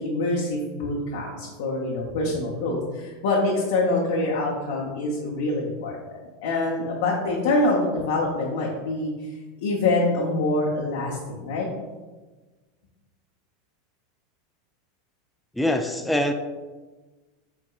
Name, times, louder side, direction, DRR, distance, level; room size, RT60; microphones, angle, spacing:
voice 1, 0.0-9.1 9.6-11.7, left 2 dB, 70° left, -4 dB, 0.8 m, -25 dB
voice 2, 15.6-16.3, left 1 dB, 5° left, 5 dB, 0.3 m, -23 dB
4.7 x 4.3 x 2.4 m, 1.3 s
hypercardioid pair, 95°, 0 cm